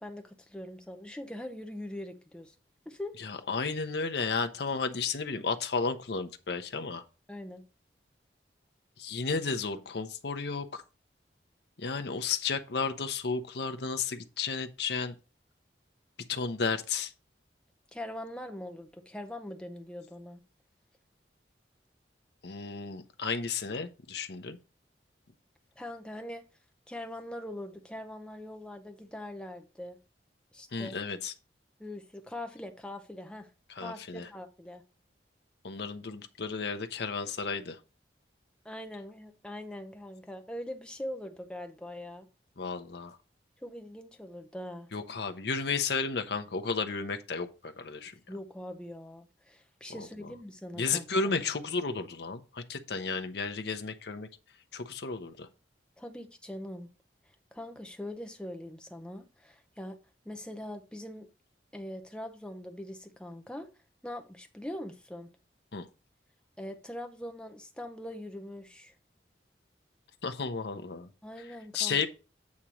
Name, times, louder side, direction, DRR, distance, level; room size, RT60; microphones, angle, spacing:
voice 1, 0.0-2.5 2.9-3.2 7.3-7.6 17.9-20.4 25.8-26.4 26.9-30.0 30.5-31.0 31.8-33.5 33.8-34.8 38.6-42.3 43.6-44.9 48.3-51.1 56.0-56.9 57.2-60.0 60.2-61.3 61.7-63.7 64.0-65.3 66.6-68.9 71.2-72.0, left 1 dB, 5° left, 0.7 m, -42 dB
voice 2, 3.2-7.0 9.0-10.8 11.8-15.1 16.3-17.1 22.4-24.6 30.7-31.3 33.7-34.3 35.6-37.8 42.6-43.2 44.9-48.1 49.9-50.3 50.8-54.3 54.7-55.5 65.7-65.9 70.2-71.1 71.4-71.5 71.7-72.1, left 4 dB, 65° left, 0.7 m, -33 dB
8.4 x 2.9 x 6.1 m
head